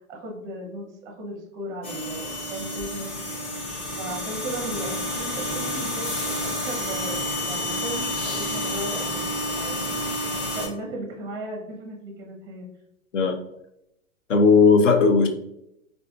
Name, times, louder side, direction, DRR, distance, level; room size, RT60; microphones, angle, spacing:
voice 1, 0.1-3.1 4.0-7.2 7.5-9.2 9.6-10.0 10.4-12.7, right 1 dB, 10° right, 1 dB, 0.6 m, -36 dB
sound 1, 1.8-10.7, left 1 dB, 30° left, 0.8 m, -29 dB
voice 2, 14.3-15.3, left 4 dB, 65° left, 7 dB, 0.6 m, -16 dB
4.8 x 2.6 x 2.2 m, 0.80 s
figure-of-eight pair, 105°, 41 cm